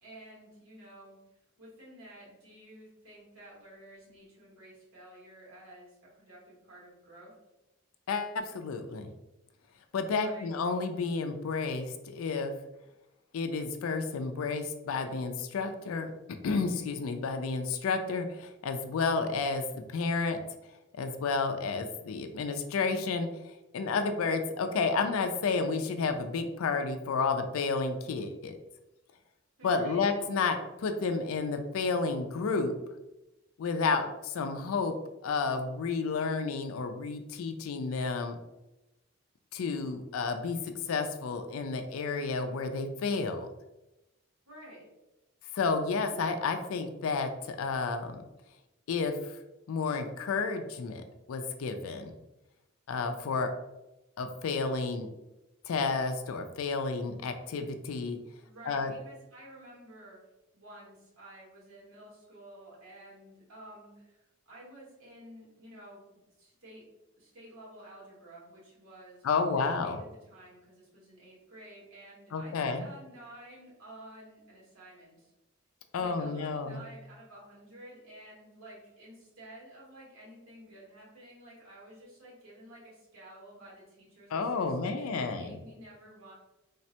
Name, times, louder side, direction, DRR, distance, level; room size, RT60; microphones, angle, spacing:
voice 1, 0.0-1.2 1.6-7.3 10.1-10.5 29.6-30.0 44.5-44.9 58.4-60.3 60.5-66.8 67.2-75.3 76.0-86.3, right 1 dB, 90° right, -6 dB, 1.4 m, -51 dB
voice 2, 8.1-9.1 9.9-12.5 13.3-16.1 16.4-20.4 21.0-23.3 23.7-28.6 29.6-32.7 33.6-34.9 35.2-38.4 39.5-43.5 45.5-48.2 48.9-49.3 49.7-51.0 51.3-52.1 52.9-53.5 54.2-55.1 55.6-58.2 58.6-58.9 69.2-70.0 72.3-72.9 75.9-76.8 84.3-85.5, left 4 dB, 80° left, 7 dB, 0.4 m, -31 dB
3.4 x 2.1 x 2.8 m, 0.96 s
head